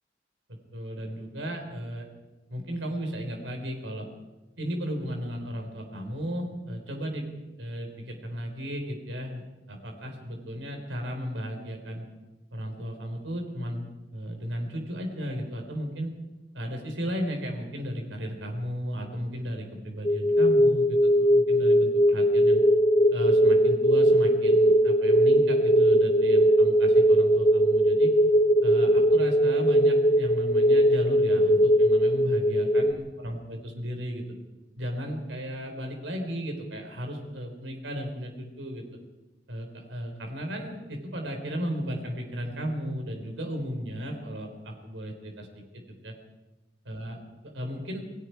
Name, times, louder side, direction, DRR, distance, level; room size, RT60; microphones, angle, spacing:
voice 1, 0.7-2.1 2.5-4.1 4.6-7.3 7.6-9.4 9.7-12.1 12.5-16.1 16.5-22.6 23.1-28.1 28.6-34.2 34.8-38.8 39.5-45.6 46.0-46.1 46.8-47.2 47.5-48.0, equal, 85° right, 3 dB, 4.6 m, -34 dB
sound 1, 20.0-32.9, equal, 25° left, 1.5 m, -20 dB
29.0 x 20.0 x 4.8 m, 1.1 s
head